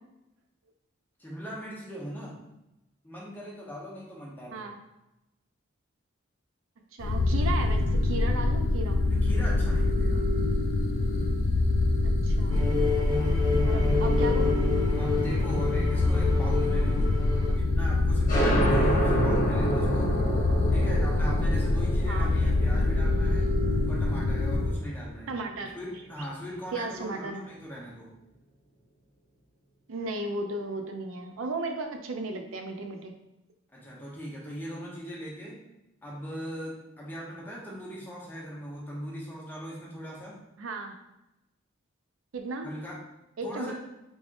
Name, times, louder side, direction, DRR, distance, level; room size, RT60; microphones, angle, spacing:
voice 1, 1.2-2.4 3.0-4.7 9.0-10.2 13.0-13.3 15.0-17.1 17.4-20.1 20.7-23.5 23.9-25.3 25.7-28.1 33.7-35.6 36.0-40.4 42.6-43.0 43.4-43.7, equal, 10° left, -5 dB, 0.8 m, -39 dB
voice 2, 6.9-9.0 12.0-12.7 13.6-14.6 22.1-22.3 25.3-25.8 26.7-27.5 29.9-33.1 40.6-40.9 42.3-42.7 43.4-43.7, right 2 dB, 90° right, 4 dB, 0.5 m, -35 dB
sound 1, 7.0-24.8, left 2 dB, 75° left, 0.4 m, -25 dB
sound 2, 12.5-17.5, left 4 dB, 20° right, 0.7 m, -30 dB
sound 3, 18.3-25.5, right 1 dB, 45° left, 0.9 m, -29 dB
3.5 x 3.4 x 2.5 m, 0.92 s
head